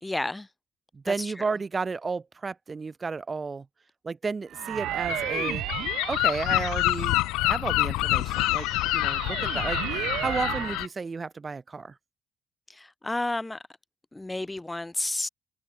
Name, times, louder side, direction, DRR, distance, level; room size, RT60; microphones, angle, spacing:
voice 1, 0.0-0.5 1.1-1.5 12.7-13.6 14.1-15.3, left 2 dB, 15° left, 0.5 m, -31 dB
voice 2, 0.9-3.7 4.0-5.6 6.1-8.7 8.9-12.0, right 4 dB, 35° right, 2.9 m, -32 dB
sound 1, 4.5-7.4 8.0-10.9, right 14 dB, 75° right, 2.0 m, -34 dB
Gull seagull, 5.1-10.9, left 20 dB, 85° left, 0.4 m, -27 dB
supercardioid pair, 60°, 0 cm